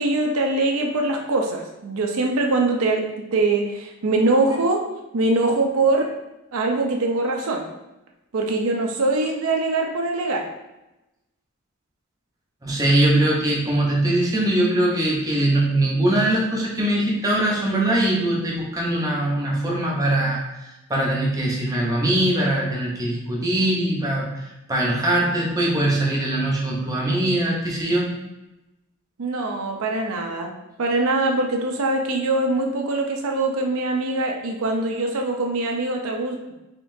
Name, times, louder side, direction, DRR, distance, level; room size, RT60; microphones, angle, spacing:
voice 1, 0.0-3.0 3.3-4.8 5.1-6.1 6.5-7.7 8.3-10.4 29.2-30.5 30.8-36.5, right 2 dB, 75° right, 2 dB, 0.5 m, -23 dB
voice 2, 12.6-20.4 20.9-28.1, right 1 dB, 15° right, -3 dB, 0.6 m, -21 dB
3.7 x 3.5 x 2.6 m, 0.96 s
head